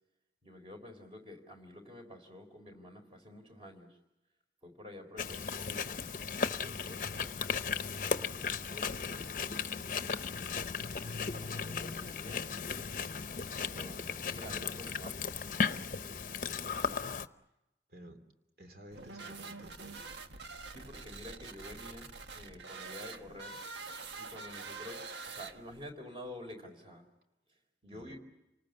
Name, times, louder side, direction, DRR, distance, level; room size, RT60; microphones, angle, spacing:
voice 1, 0.4-4.0 4.6-7.6 8.3-9.1 10.8-12.6 13.5-15.4 20.6-23.6 24.2-27.1 27.8-28.2, left 1 dB, 30° right, 4 dB, 4.0 m, -50 dB
Chewing mastication, 5.2-17.3, left 5 dB, 45° left, 0.8 m, -36 dB
voice 2, 9.5-10.0 16.3-16.6 17.9-18.2 18.6-20.1 27.9-28.2, right 1 dB, 60° right, 6 dB, 3.0 m, -54 dB
sound 1, 18.9-25.9, right 4 dB, 90° right, 1.4 m, -46 dB
28.5 x 19.5 x 7.9 m, 0.97 s
head